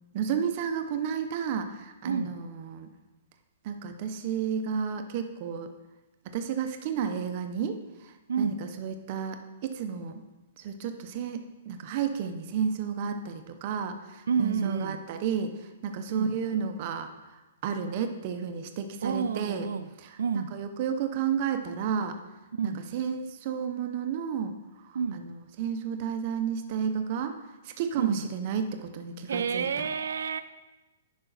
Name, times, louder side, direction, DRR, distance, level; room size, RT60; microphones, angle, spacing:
voice 1, 0.1-2.9 3.6-5.7 6.3-10.2 10.6-15.6 15.8-17.1 17.6-19.7 20.5-22.2 22.6-24.6 24.9-27.4 27.6-29.9, right 7 dB, 30° right, 7 dB, 0.6 m, -32 dB
voice 2, 8.3-8.6 14.3-15.0 16.1-16.3 19.0-19.9 20.2-20.5 22.5-22.8 24.9-25.2 28.0-28.2 29.3-30.4, right 6 dB, 85° right, 10 dB, 0.3 m, -29 dB
10.0 x 5.1 x 3.9 m, 1.1 s
hypercardioid pair, 175°, 0 cm